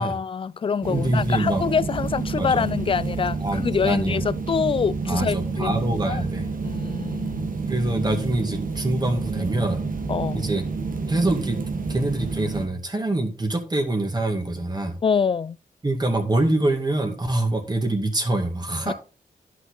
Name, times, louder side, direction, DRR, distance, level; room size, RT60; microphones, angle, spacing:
voice 1, 0.0-6.2 6.6-7.5 10.1-10.5 15.0-15.6 18.9-19.0, left 6 dB, 35° left, 0.4 m, -25 dB
sound 1, 0.8-12.7, right 4 dB, 65° right, 1.4 m, -29 dB
voice 2, 0.9-1.6 2.3-2.7 3.4-4.2 5.0-6.5 7.7-9.8 10.3-10.6 11.1-11.6 11.9-15.0 15.8-18.9, right 1 dB, 30° right, 2.3 m, -25 dB
11.0 x 5.9 x 4.0 m
cardioid pair, 75°, 15 cm